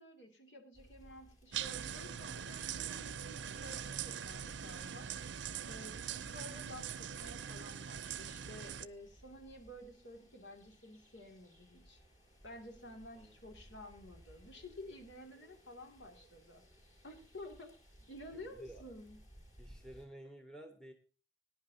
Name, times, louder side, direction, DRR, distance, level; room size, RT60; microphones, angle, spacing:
voice 1, 0.0-5.1 5.7-12.0 12.4-16.6 17.0-17.7 18.1-19.2, left 1 dB, 75° left, 3 dB, 2.5 m, -52 dB
sound 1, 0.7-20.1, equal, 40° left, 5.5 m, -62 dB
sound 2, 1.5-8.9, right 8 dB, 75° right, 0.6 m, -42 dB
voice 2, 18.3-18.8 19.6-20.9, right 1 dB, 5° left, 5 dB, 1.0 m, -52 dB
20.0 x 10.5 x 2.8 m, 0.35 s
head